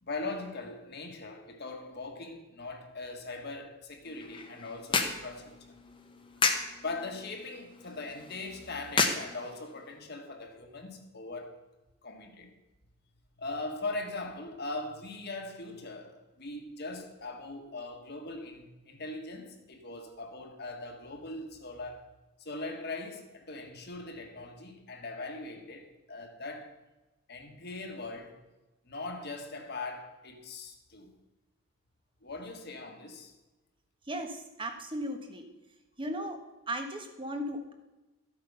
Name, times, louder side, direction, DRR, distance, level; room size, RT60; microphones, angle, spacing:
voice 1, 0.0-5.7 6.8-11.5 12.0-12.5 13.4-22.0 22.4-26.7 27.3-28.3 28.8-31.1 32.2-33.3, left 2 dB, 50° left, 1.7 m, -40 dB
sound 1, 4.0-10.0, left 4 dB, 25° left, 1.1 m, -34 dB
voice 2, 34.1-35.4 36.0-36.4 36.7-37.7, equal, 25° right, 1.3 m, -36 dB
13.5 x 8.3 x 5.6 m
head